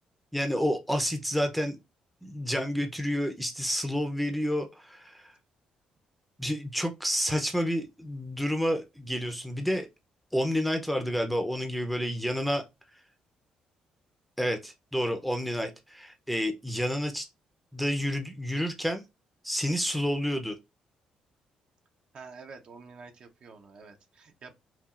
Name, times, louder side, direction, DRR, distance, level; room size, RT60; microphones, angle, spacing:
voice 1, 0.3-1.8 2.2-5.3 6.4-9.9 10.3-12.6 14.4-17.3 17.7-19.0 19.4-20.6, equal, ahead, 0.6 m, -29 dB
voice 2, 22.1-24.5, right 4 dB, 50° right, 0.8 m, -48 dB
5.7 x 2.4 x 2.4 m
cardioid pair, 130°, 2 cm